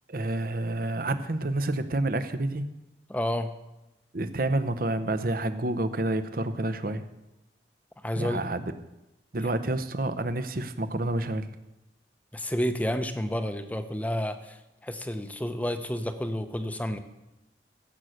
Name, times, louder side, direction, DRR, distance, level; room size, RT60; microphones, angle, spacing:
voice 1, 0.1-2.6 4.1-7.0 8.2-8.6 9.3-11.5, right 2 dB, 55° right, 11 dB, 0.9 m, -29 dB
voice 2, 3.1-3.5 8.0-8.5 9.4-9.5 12.3-17.0, equal, 10° left, 8 dB, 0.8 m, -30 dB
15.5 x 8.1 x 6.5 m, 0.97 s
head